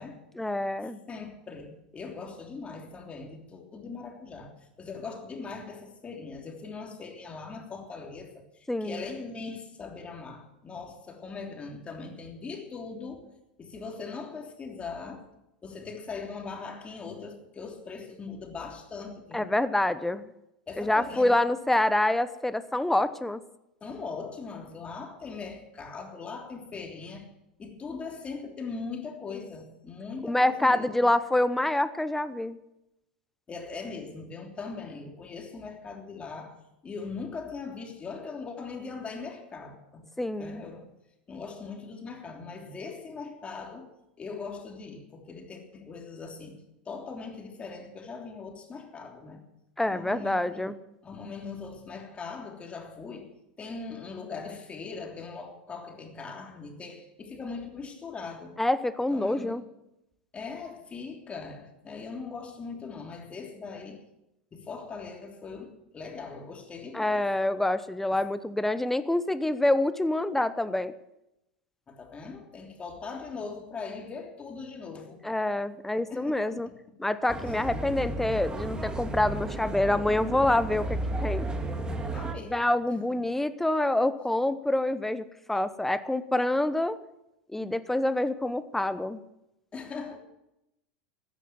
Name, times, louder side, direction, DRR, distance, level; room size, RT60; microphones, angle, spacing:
voice 1, 0.4-1.0 8.7-9.0 19.3-20.3 20.8-23.4 30.2-32.6 40.2-40.6 49.8-50.7 58.6-59.6 66.9-70.9 75.2-76.7 77.0-81.5 82.4-87.0 87.5-89.2, left 1 dB, 5° left, 14 dB, 0.9 m, -26 dB
voice 2, 1.1-13.3 13.6-15.3 15.6-19.5 20.7-21.3 23.8-27.3 27.6-31.1 33.5-36.6 36.8-40.1 40.4-40.9 41.3-43.9 44.2-49.4 49.8-53.3 53.6-58.6 59.1-59.6 60.3-64.0 64.5-67.3 71.9-75.2 76.1-76.7 77.4-77.6 82.1-82.7 83.1-83.2 89.7-90.2, left 4 dB, 25° left, 3 dB, 3.2 m, -40 dB
sound 1, 77.3-82.3, right 2 dB, 15° right, 1.9 m, -33 dB
14.5 x 10.0 x 7.8 m, 0.87 s
hypercardioid pair, 90°, 5 cm